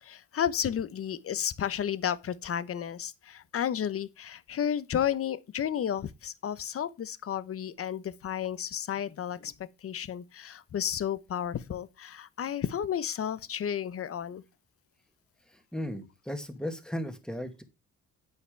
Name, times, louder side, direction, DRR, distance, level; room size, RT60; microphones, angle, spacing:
voice 1, 0.0-9.5 9.8-14.4, left 9 dB, 50° left, 0.9 m, -32 dB
voice 2, 15.7-17.6, equal, 5° left, 2.3 m, -36 dB
9.3 x 8.7 x 3.4 m
cardioid pair, 90°, 30 cm